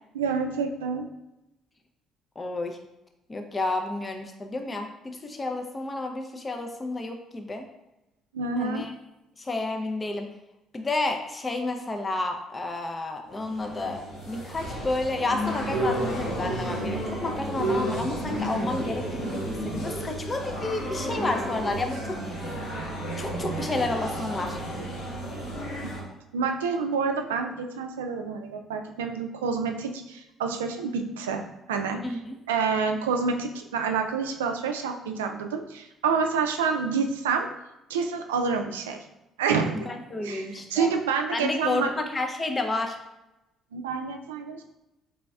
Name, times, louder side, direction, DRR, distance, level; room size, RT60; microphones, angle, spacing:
voice 1, 0.1-1.1 8.3-8.8 25.8-25.9 26.3-31.4 31.7-32.0 32.5-37.5 37.9-39.0 39.4-39.9 40.2-41.9 43.7-44.6, right 5 dB, 90° right, 5 dB, 0.3 m, -28 dB
voice 2, 2.4-2.8 3.3-7.7 8.6-8.9 9.4-10.3 10.7-22.4 23.2-24.6 32.0-32.4 39.8-40.9 41.3-43.0, left 2 dB, 30° left, 4 dB, 0.5 m, -31 dB
sound 1, 13.3-26.0, right 1 dB, 75° left, 1.5 m, -32 dB
4.0 x 3.3 x 2.3 m, 0.93 s
hypercardioid pair, 55°, 0 cm